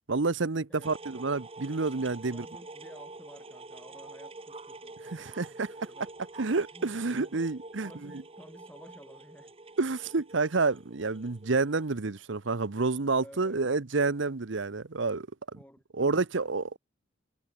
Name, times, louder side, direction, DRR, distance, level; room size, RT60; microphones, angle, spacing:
voice 1, 0.1-2.4 5.0-5.7 6.4-8.1 9.8-15.3 15.9-16.8, right 3 dB, 70° right, 0.9 m, -29 dB
voice 2, 0.7-1.1 2.1-6.1 6.7-6.9 7.2-7.5 7.8-9.5 13.2-13.8 15.5-16.5, equal, 5° left, 7.9 m, -54 dB
sound 1, 0.8-11.9, right 3 dB, 30° right, 1.4 m, -47 dB
head